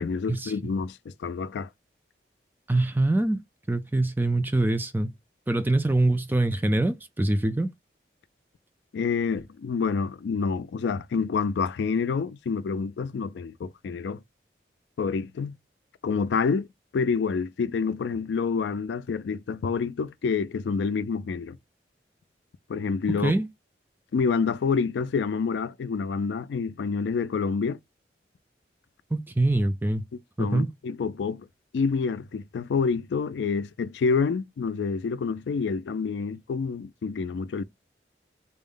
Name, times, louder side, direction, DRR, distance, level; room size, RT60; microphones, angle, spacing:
voice 1, 0.0-1.7 8.9-14.2 15.0-15.6 16.0-16.7 16.9-21.6 22.7-23.3 24.1-27.8 30.4-31.5 31.7-37.6, left 5 dB, 80° left, 0.3 m, -28 dB
voice 2, 2.7-3.4 3.7-5.1 5.5-7.7 23.2-23.5 29.1-30.0 30.4-30.7, right 2 dB, 10° right, 0.4 m, -24 dB
4.1 x 2.1 x 3.6 m
head